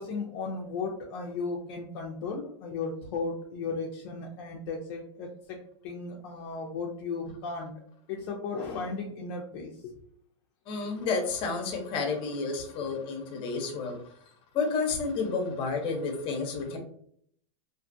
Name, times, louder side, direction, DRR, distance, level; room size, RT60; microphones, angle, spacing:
voice 1, 0.0-5.6 5.8-7.7 8.1-9.9, left 4 dB, 55° left, 0 dB, 0.5 m, -35 dB
voice 2, 10.7-14.0 14.5-16.8, left 4 dB, 35° left, 3 dB, 0.8 m, -30 dB
2.5 x 2.4 x 2.6 m, 0.65 s
hypercardioid pair, 135°, 15 cm